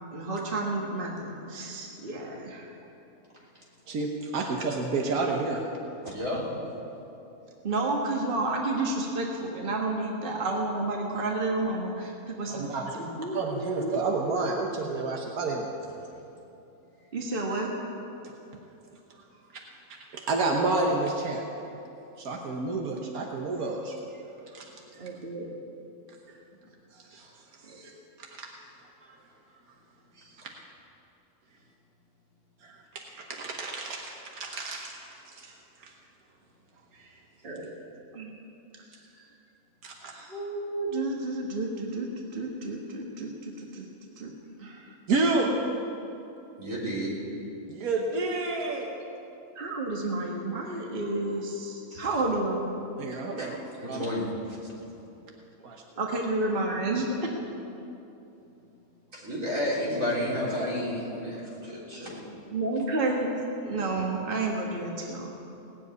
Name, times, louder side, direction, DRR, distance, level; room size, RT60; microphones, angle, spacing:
voice 1, 0.1-2.7 7.6-12.7 12.9-14.0 14.4-14.5 17.1-17.7 25.0-25.5 27.7-28.0 37.4-37.7 38.1-38.4 40.1-42.1 42.3-43.9 44.2-44.3 44.6-44.9 49.6-52.8 56.0-57.3 62.5-63.4 63.6-65.4, right 2 dB, 40° right, -1 dB, 1.6 m, -31 dB
voice 2, 3.9-5.6 12.5-15.7 19.5-19.6 20.1-21.4 22.2-23.9 24.5-24.7 26.9-27.3 27.6-27.9 28.2-28.5 29.0-29.1 30.2-30.3 32.6-35.5 35.8-35.9 36.9-37.1 39.8-40.1 45.1-45.6 47.7-48.9 52.0-52.1 53.0-53.6 53.9-54.1 55.6-55.8, right 3 dB, 90° right, 0 dB, 1.5 m, -30 dB
voice 3, 6.0-6.5 46.6-47.1 51.9-52.1 53.4-53.5 53.8-54.3 59.1-62.2, left 1 dB, 65° right, -6 dB, 3.9 m, -31 dB
18.0 x 7.3 x 9.4 m, 2.9 s
omnidirectional pair, 1.5 m